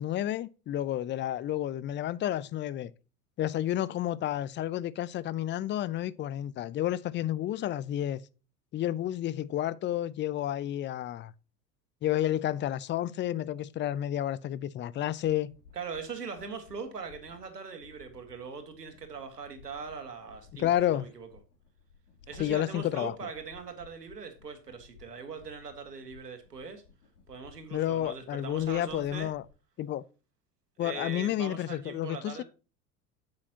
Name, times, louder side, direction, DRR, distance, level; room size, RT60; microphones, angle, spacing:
voice 1, 0.0-2.9 3.4-8.2 8.7-11.3 12.0-15.5 20.6-21.1 22.4-23.1 27.7-29.4 29.8-30.0 30.8-32.4, left 12 dB, 25° left, 0.5 m, -30 dB
sound 1, 15.0-29.5, left 5 dB, 75° left, 2.9 m, -58 dB
voice 2, 15.7-21.3 22.3-26.8 27.3-29.3 30.8-32.4, right 5 dB, 90° right, 1.8 m, -41 dB
8.5 x 7.6 x 2.8 m
figure-of-eight pair, 75°, 46 cm